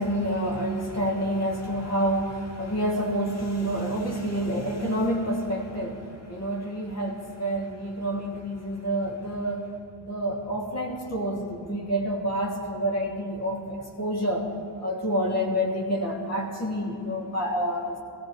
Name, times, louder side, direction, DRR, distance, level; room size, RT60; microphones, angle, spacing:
voice 1, 0.0-9.7 10.0-14.5 14.8-18.0, equal, 40° left, -1 dB, 2.5 m, -28 dB
20.5 x 16.0 x 3.2 m, 2.8 s
cardioid pair, 80°, 40 cm